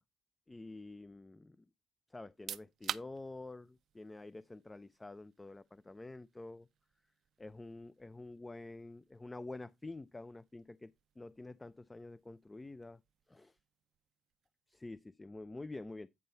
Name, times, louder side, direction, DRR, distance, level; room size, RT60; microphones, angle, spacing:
voice 1, 0.5-1.7 2.1-6.7 7.4-13.0 13.3-13.6 14.7-16.1, left 2 dB, 20° left, 0.4 m, -48 dB
sound 1, 2.2-14.9, right 9 dB, 65° right, 0.5 m, -52 dB
9.5 x 3.9 x 5.5 m
cardioid pair, 90°, 0 cm